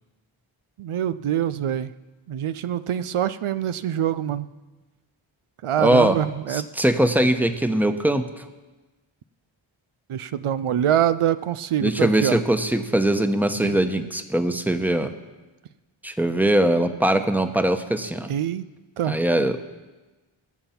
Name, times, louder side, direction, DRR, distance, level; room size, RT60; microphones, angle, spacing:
voice 1, 0.8-1.9 2.3-4.5 5.6-6.7 10.1-12.4 13.6-13.8 18.3-18.6 19.0-19.2, right 10 dB, 80° right, 13 dB, 0.6 m, -24 dB
voice 2, 5.8-6.2 6.5-8.4 11.8-15.1 16.0-18.3 19.1-19.6, right 1 dB, 5° right, 8 dB, 1.0 m, -21 dB
20.5 x 7.1 x 5.8 m, 1.2 s
cardioid pair, 45°, 50 cm